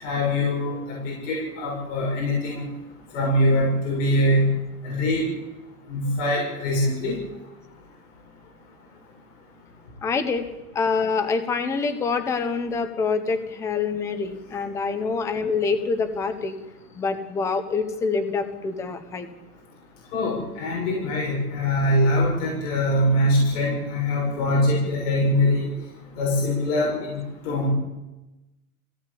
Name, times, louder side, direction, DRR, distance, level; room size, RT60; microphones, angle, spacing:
voice 1, 0.0-2.6 3.1-4.5 4.8-5.2 5.9-7.2 20.1-25.6 26.2-27.1 27.4-27.7, left 1 dB, 55° left, -2 dB, 7.0 m, -23 dB
voice 2, 10.0-10.5 10.7-16.6 16.9-19.3, left 4 dB, 5° left, 9 dB, 0.7 m, -26 dB
20.5 x 17.5 x 8.4 m, 1.0 s
supercardioid pair, 170°, 44 cm